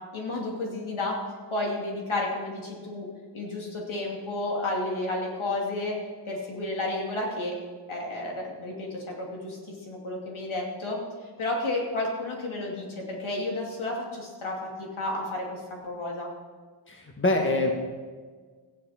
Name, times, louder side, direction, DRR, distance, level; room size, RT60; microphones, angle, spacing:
voice 1, 0.1-1.2 1.5-3.1 3.3-6.0 6.3-7.5 7.9-11.0 11.4-16.3, left 2 dB, 85° left, -2 dB, 2.7 m, -31 dB
voice 2, 16.9-17.7, left 2 dB, 25° left, 2 dB, 1.7 m, -25 dB
14.5 x 10.0 x 4.4 m, 1.5 s
wide cardioid pair, 75°, 47 cm